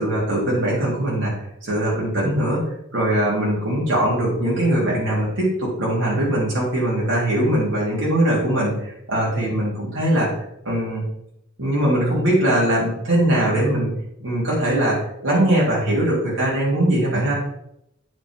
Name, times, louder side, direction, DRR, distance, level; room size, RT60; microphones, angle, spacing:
voice 1, 0.0-2.6 2.9-10.3 10.7-11.0 11.6-13.9 14.2-15.0 15.2-17.3, right 1 dB, 75° right, -6 dB, 3.9 m, -21 dB
9.5 x 6.9 x 4.0 m, 0.78 s
head